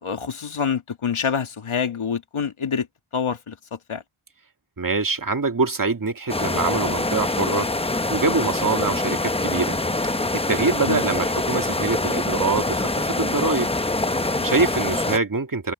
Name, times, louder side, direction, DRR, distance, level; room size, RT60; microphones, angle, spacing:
voice 1, 0.0-2.9 3.1-4.0 10.8-11.0 14.1-14.5, left 6 dB, 75° left, 1.7 m, -27 dB
voice 2, 4.8-9.8 10.0-10.2 10.5-13.7 14.4-15.7, right 3 dB, 40° right, 2.1 m, -24 dB
sound 1, 6.3-15.2, left 2 dB, 10° left, 0.7 m, -24 dB
wide cardioid pair, 95°, 49 cm